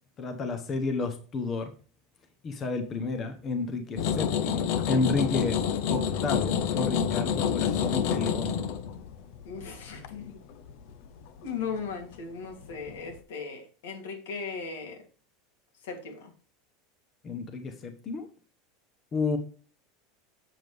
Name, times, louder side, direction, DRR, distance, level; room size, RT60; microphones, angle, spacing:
voice 1, 0.2-1.7 2.4-5.6 5.9-8.6 17.2-18.3 19.1-19.4, left 3 dB, 20° left, 0.9 m, -31 dB
sound 1, 4.0-12.1 12.6-13.2, left 8 dB, 50° left, 0.7 m, -28 dB
voice 2, 9.4-10.4 11.4-15.0 15.8-16.3, left 5 dB, 80° left, 2.8 m, -37 dB
7.8 x 7.2 x 3.4 m
supercardioid pair, 180°, 0 cm